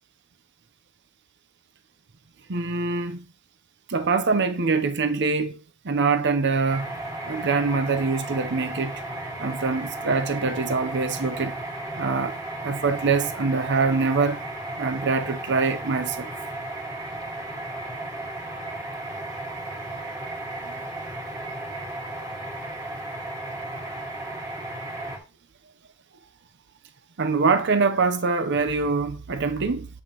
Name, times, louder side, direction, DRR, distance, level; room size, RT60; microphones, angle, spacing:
voice 1, 2.5-3.2 3.9-5.5 5.8-6.9 7.2-9.0 9.4-11.6 12.0-12.3 12.6-14.4 14.8-16.3 20.7-20.8 27.2-29.9, right 4 dB, 55° right, 0.7 m, -24 dB
sound 1, 6.7-25.2, right 2 dB, 15° right, 1.8 m, -34 dB
8.8 x 5.5 x 2.9 m
head